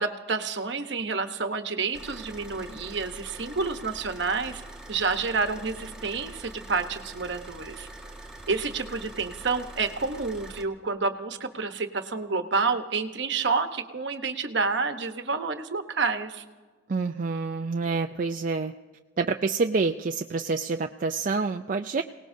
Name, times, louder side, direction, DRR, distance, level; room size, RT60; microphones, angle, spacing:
voice 1, 0.0-4.6 4.9-7.9 8.5-16.4, right 4 dB, 60° right, 7 dB, 1.1 m, -29 dB
Car / Idling, 1.9-10.6, right 1 dB, 5° right, 1.7 m, -44 dB
voice 2, 16.9-18.7 19.2-22.0, right 4 dB, 45° right, 5 dB, 0.4 m, -27 dB
28.0 x 18.5 x 2.7 m, 1.4 s
head